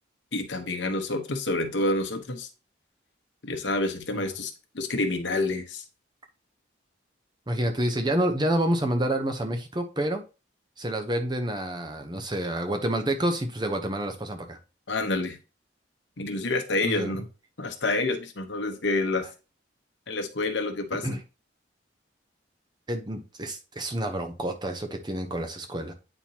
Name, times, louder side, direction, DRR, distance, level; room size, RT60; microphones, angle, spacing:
voice 1, 0.3-2.5 3.4-5.8 14.9-15.4 16.2-17.2 17.6-19.3 20.1-21.1, left 2 dB, 80° left, 1.1 m, -28 dB
voice 2, 7.5-10.2 10.8-14.6 16.8-17.2 21.0-21.2 22.9-25.9, right 1 dB, 25° right, 0.8 m, -28 dB
9.0 x 4.4 x 2.9 m
head